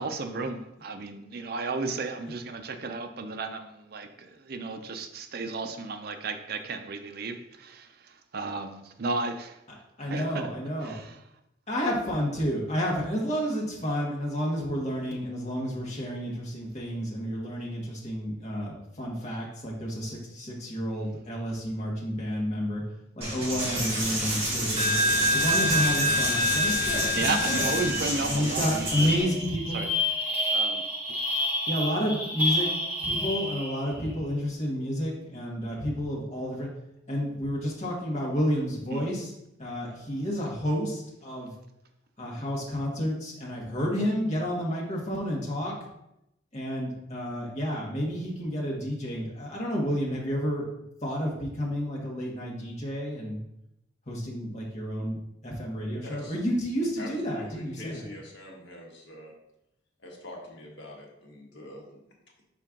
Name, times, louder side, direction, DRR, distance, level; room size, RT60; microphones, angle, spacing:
voice 1, 0.0-9.6 10.1-10.5 10.8-11.2 27.1-29.3 29.7-29.9 30.5-30.8 38.9-39.1, right 3 dB, 50° right, 7 dB, 0.5 m, -34 dB
voice 2, 10.0-10.9 11.7-22.8 23.2-24.9 25.3-27.6 28.3-29.8 31.7-32.7 33.0-36.7 37.1-39.3 39.6-41.5 42.2-45.7 46.5-50.6 51.0-53.4 54.1-55.2 55.4-58.0, equal, 35° left, -3 dB, 1.5 m, -30 dB
Coin (dropping), 23.2-29.2, equal, 30° right, 2.1 m, -26 dB
sound 1, 27.2-27.3 27.5-34.0, left 1 dB, 10° right, 1.5 m, -30 dB
voice 3, 56.0-56.3 57.0-59.3 60.0-62.0, left 2 dB, 65° left, -2 dB, 1.5 m, -44 dB
6.0 x 4.5 x 3.7 m, 0.84 s
head